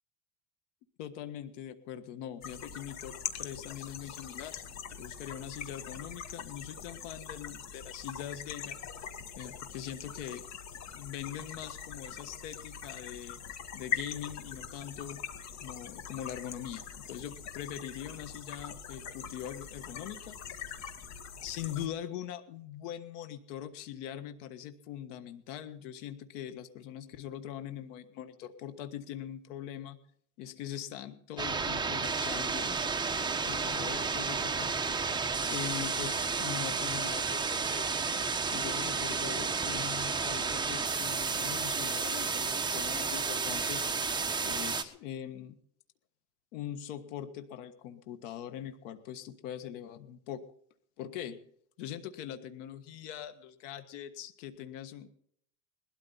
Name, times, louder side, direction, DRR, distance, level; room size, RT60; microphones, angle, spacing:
voice 1, 1.0-4.6 5.0-8.8 9.3-10.4 10.9-13.4 13.7-15.2 15.6-20.4 21.4-30.0 30.4-32.7 33.4-34.8 35.5-44.1 44.4-45.6 46.5-50.5 51.0-51.4 51.8-55.1, left 10 dB, 80° left, 10 dB, 1.6 m, -42 dB
sound 1, 2.4-21.9, left 7 dB, 50° left, 1.9 m, -42 dB
sound 2, 31.4-44.8, right 5 dB, 10° right, 1.2 m, -32 dB
20.5 x 13.0 x 4.2 m, 0.65 s
supercardioid pair, 130°, 36 cm